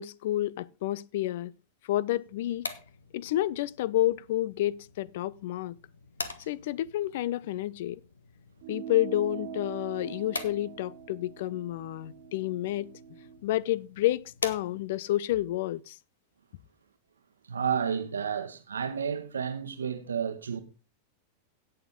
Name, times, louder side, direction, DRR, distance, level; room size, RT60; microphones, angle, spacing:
voice 1, 0.0-1.5 1.9-2.7 3.1-5.8 6.5-8.0 8.7-12.9 13.4-16.0, left 14 dB, 55° left, 0.4 m, -30 dB
sound 1, 2.3-15.1, left 3 dB, 75° left, 1.0 m, -45 dB
sound 2, 8.6-13.4, right 9 dB, 50° right, 0.8 m, -43 dB
voice 2, 17.5-20.6, right 7 dB, 70° right, 1.1 m, -31 dB
17.0 x 6.6 x 3.7 m
figure-of-eight pair, 90°, 0 cm